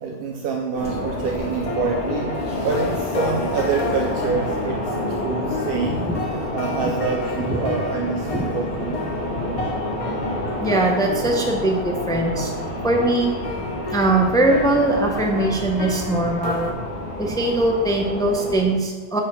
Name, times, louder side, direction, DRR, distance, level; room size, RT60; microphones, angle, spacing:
voice 1, 0.0-4.9 5.2-6.1 6.5-8.9, right 5 dB, 65° right, 1 dB, 0.7 m, -26 dB
sound 1, 0.7-18.6, left 1 dB, 65° left, 2.2 m, -30 dB
sound 2, 1.7-16.7, left 3 dB, 40° left, 0.7 m, -31 dB
voice 2, 10.6-12.5 12.8-13.3 13.9-16.7 17.2-19.2, right 2 dB, 5° left, 1 dB, 0.4 m, -21 dB
4.9 x 4.5 x 5.4 m, 1.4 s
omnidirectional pair, 1.1 m